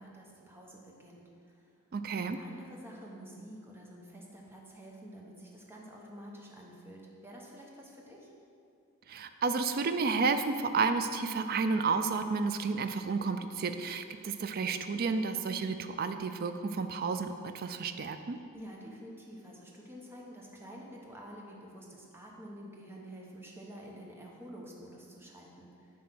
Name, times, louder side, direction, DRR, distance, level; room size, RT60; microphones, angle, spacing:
voice 1, 0.0-1.7 2.4-8.3 18.5-25.9, equal, 10° right, -2 dB, 0.9 m, -49 dB
voice 2, 1.9-2.4 9.1-18.4, right 4 dB, 40° right, 8 dB, 0.3 m, -31 dB
9.5 x 3.2 x 6.1 m, 2.5 s
head